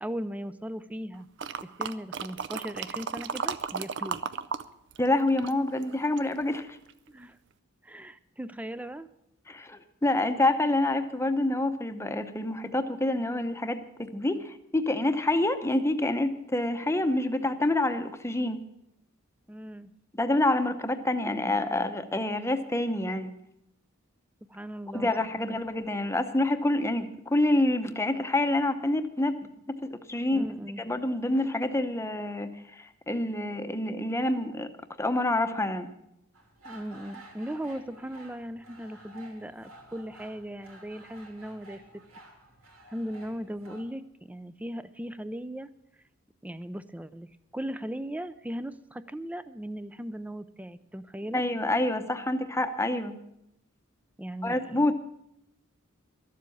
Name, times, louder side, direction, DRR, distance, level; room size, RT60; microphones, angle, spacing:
voice 1, 0.0-1.3 1.8-4.2 7.1-7.4 7.8-9.1 19.5-19.9 24.5-25.6 30.3-30.8 36.6-41.8 42.9-45.7 46.4-51.4 54.2-54.8, equal, 5° right, 14 dB, 0.4 m, -38 dB
sound 1, 1.4-4.6 4.9-6.4 6.9-7.0, right 6 dB, 60° right, 0.5 m, -34 dB
voice 2, 5.0-6.8 9.5-18.6 20.2-23.3 24.9-29.4 29.9-30.5 30.9-32.5 32.8-34.7 35.0-35.9 51.3-53.2 54.4-54.9, left 1 dB, 15° left, 9 dB, 0.8 m, -27 dB
sound 2, 36.3-43.8, right 2 dB, 85° right, 3.1 m, -51 dB
13.0 x 7.5 x 8.5 m, 0.81 s
head